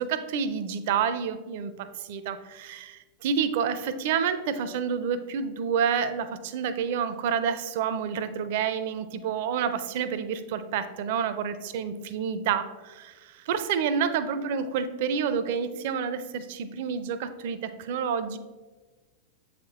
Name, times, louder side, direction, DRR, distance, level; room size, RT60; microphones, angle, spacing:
voice 1, 0.0-18.4, right 7 dB, 50° right, 12 dB, 0.4 m, -29 dB
7.7 x 3.6 x 3.4 m, 1.3 s
figure-of-eight pair, 90°, 0 cm